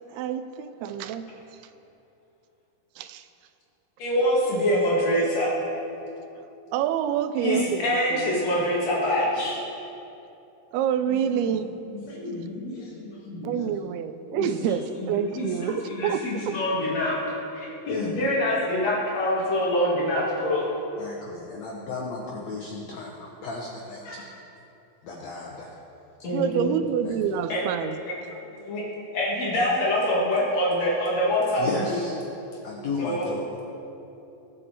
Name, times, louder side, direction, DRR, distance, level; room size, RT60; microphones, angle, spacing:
voice 1, 0.1-1.3 3.0-3.3 6.7-8.4 10.7-11.7 13.4-16.5 26.3-28.0, right 8 dB, 85° right, 11 dB, 2.5 m, -27 dB
voice 2, 4.0-5.6 7.4-9.6 11.4-11.5 11.9-13.5 14.3-14.5 15.0-17.2 17.5-20.7 24.0-24.2 26.2-26.7 27.5-27.6 28.6-28.8 29.1-32.0 33.0-33.3, left 1 dB, 50° left, -5 dB, 2.8 m, -25 dB
voice 3, 21.0-24.2 25.0-25.7 27.1-27.2 31.5-32.2 32.6-33.5, left 3 dB, 75° left, -1 dB, 1.6 m, -34 dB
20.5 x 7.2 x 4.3 m, 2.8 s
omnidirectional pair, 4.5 m